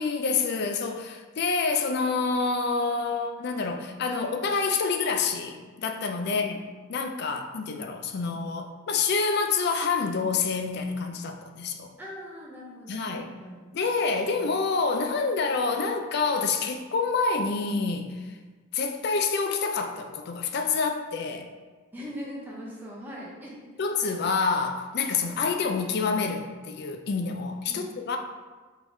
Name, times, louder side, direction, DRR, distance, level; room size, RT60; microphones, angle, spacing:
voice 1, 0.0-6.6 6.9-11.9 12.9-13.3 13.7-18.4 18.7-21.5 23.8-28.2, left 4 dB, 50° left, 5 dB, 0.4 m, -27 dB
voice 2, 12.0-13.7 21.9-23.7 27.7-27.9, equal, 10° right, -5 dB, 0.7 m, -40 dB
4.5 x 3.8 x 2.6 m, 1.3 s
head